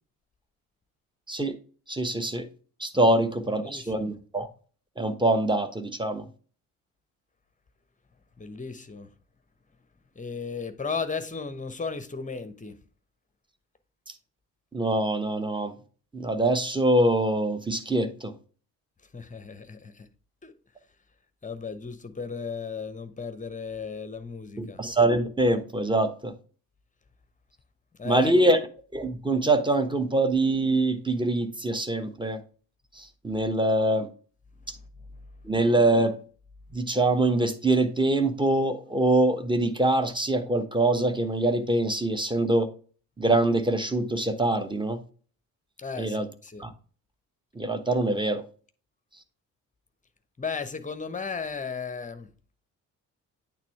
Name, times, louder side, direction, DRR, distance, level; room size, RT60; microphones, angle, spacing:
voice 1, 1.9-2.5 2.8-4.5 5.0-6.3 14.7-15.7 16.1-18.3 24.6-26.3 28.0-28.6 28.9-32.4 32.9-34.1 35.4-36.2 36.7-42.7 43.2-45.0 46.0-46.3 46.6-46.7 47.5-48.4, right 2 dB, 10° right, 1.0 m, -24 dB
voice 2, 3.6-4.1 8.4-9.1 10.1-12.8 19.1-20.1 20.4-20.5 21.4-24.8 28.0-28.6 45.8-46.6 50.4-52.3, left 5 dB, 15° left, 0.9 m, -35 dB
8.8 x 3.5 x 4.5 m
figure-of-eight pair, 45°, 45 cm